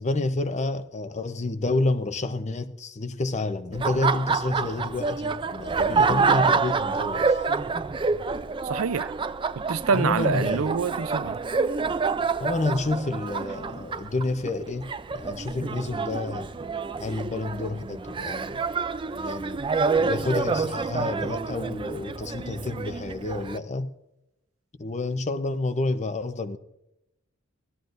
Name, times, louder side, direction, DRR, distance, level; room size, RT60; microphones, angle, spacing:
voice 1, 0.0-7.4 9.9-10.8 12.4-16.5 17.0-18.6 19.2-19.6 20.0-23.9 24.8-26.6, left 2 dB, 35° left, 0.7 m, -29 dB
Laughter, 3.7-23.6, right 4 dB, 25° right, 0.4 m, -27 dB
voice 2, 8.6-9.1 9.7-11.4, right 5 dB, 85° right, 0.5 m, -26 dB
17.5 x 12.5 x 2.6 m
head